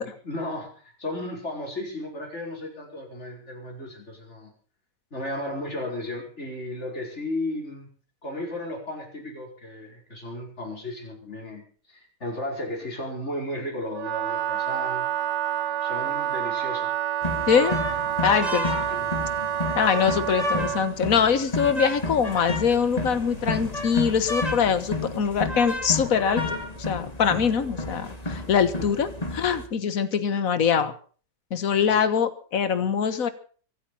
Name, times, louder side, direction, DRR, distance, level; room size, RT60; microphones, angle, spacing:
voice 1, 0.2-4.5 5.1-7.9 8.2-15.0 15.8-16.9 18.8-19.1 31.8-32.0, left 1 dB, 40° left, 0 dB, 5.3 m, -34 dB
Wind instrument woodwind instrument, 13.9-21.0, right 10 dB, 85° right, 1.6 m, -28 dB
sound 1, 17.2-29.7, left 2 dB, 20° left, 2.2 m, -31 dB
voice 2, 17.5-17.8 18.2-18.7 19.7-30.9 31.5-33.3, left 7 dB, 55° left, 12 dB, 1.7 m, -23 dB
24.5 x 8.6 x 5.7 m, 0.43 s
omnidirectional pair, 1.8 m